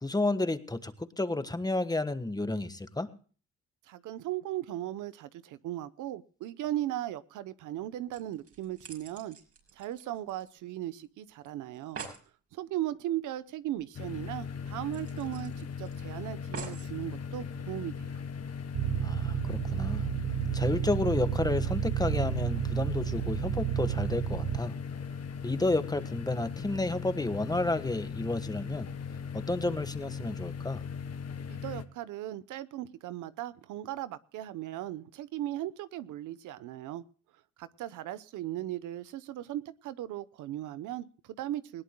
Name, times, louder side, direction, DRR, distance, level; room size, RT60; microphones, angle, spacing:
voice 1, 0.0-3.1 19.0-20.1 20.5-24.7 25.4-28.9 29.3-30.8, left 2 dB, 15° left, 10 dB, 1.4 m, -31 dB
voice 2, 3.9-9.4 9.7-12.0 12.5-18.2 31.5-37.0 37.6-41.8, right 13 dB, 85° right, 15 dB, 0.9 m, -37 dB
sound 1, 8.1-10.8 11.0-11.1 11.4-11.5 11.7-12.3 13.8-13.9 14.2-14.3 14.9-15.9 16.5-16.9 17.7-17.8, right 5 dB, 50° right, 6.5 m, -45 dB
sound 2, 13.9-31.9, left 6 dB, 55° left, 1.5 m, -39 dB
sound 3, 18.7-24.6, right 12 dB, 65° right, 0.6 m, -31 dB
20.0 x 17.5 x 2.2 m, 0.40 s
cardioid pair, 90°, 30 cm